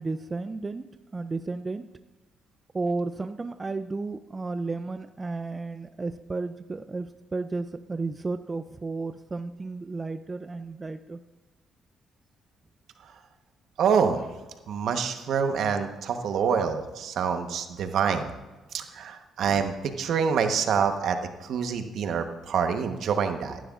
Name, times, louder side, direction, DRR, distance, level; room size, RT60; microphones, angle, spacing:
voice 1, 0.0-1.9 2.7-11.2, right 3 dB, 25° right, 10 dB, 0.4 m, -33 dB
voice 2, 13.8-14.2 14.7-18.3 18.7-23.6, right 6 dB, 70° right, 7 dB, 1.0 m, -26 dB
15.5 x 11.0 x 2.4 m, 1.2 s
cardioid pair, 90°, 0 cm